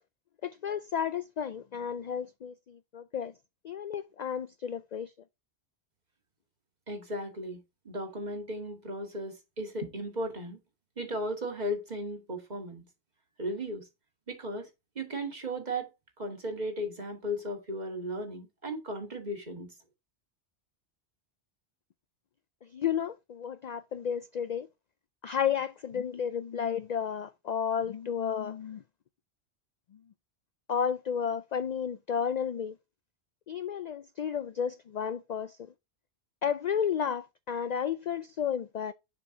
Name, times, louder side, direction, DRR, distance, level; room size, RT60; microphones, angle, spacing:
voice 1, 0.4-3.3 3.6-5.1 22.6-24.7 25.2-28.8 29.9-30.0 30.7-32.8 33.5-35.7 36.4-38.9, left 8 dB, 60° left, 0.4 m, -32 dB
voice 2, 6.9-7.6 7.9-10.6 11.0-12.8 13.4-13.9 14.3-14.7 15.0-15.9 16.2-19.7, equal, 40° right, 2.1 m, -36 dB
6.9 x 5.9 x 2.7 m
omnidirectional pair, 1.2 m